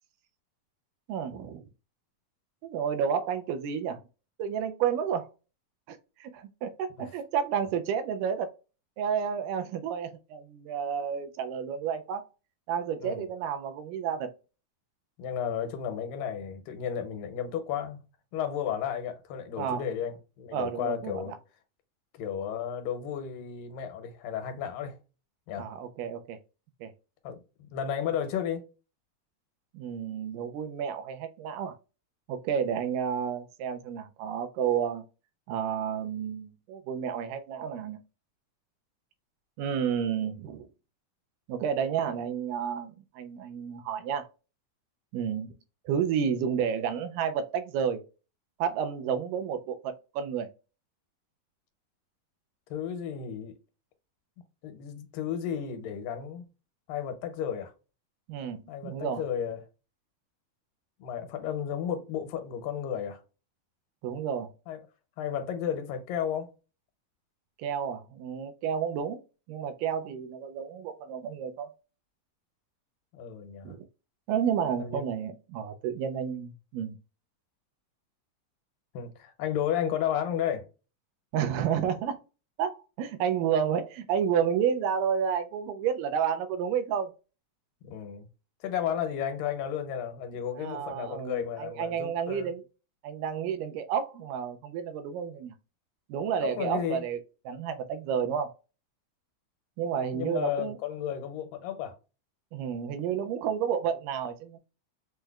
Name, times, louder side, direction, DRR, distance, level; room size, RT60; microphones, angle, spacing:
voice 1, 1.1-1.7 2.6-4.0 4.4-5.3 5.9-8.5 9.0-12.3 12.7-14.3 19.6-19.8 20.5-21.4 25.6-26.4 26.8-26.9 29.7-31.7 32.3-35.0 35.5-38.0 39.6-40.7 41.5-44.3 45.1-45.6 45.9-48.0 48.6-50.5 58.3-59.2 64.0-64.5 67.6-69.2 69.5-71.7 73.7-73.8 74.3-77.0 81.3-82.1 82.6-87.1 90.6-92.6 93.0-95.6 96.1-97.2 97.5-98.5 99.8-100.8 102.5-104.6, right 8 dB, 80° right, 2.0 m, -31 dB
voice 2, 15.2-18.0 18.3-21.3 22.2-25.0 25.5-25.7 27.2-27.4 27.7-28.6 52.7-53.5 54.6-56.5 56.9-57.7 58.7-59.6 61.0-63.2 64.7-64.8 65.2-66.5 73.1-73.7 74.8-75.0 78.9-80.7 87.8-88.3 88.6-92.5 96.4-97.0 100.1-102.0, left 9 dB, 85° left, 2.4 m, -33 dB
6.2 x 2.1 x 2.2 m
omnidirectional pair, 3.8 m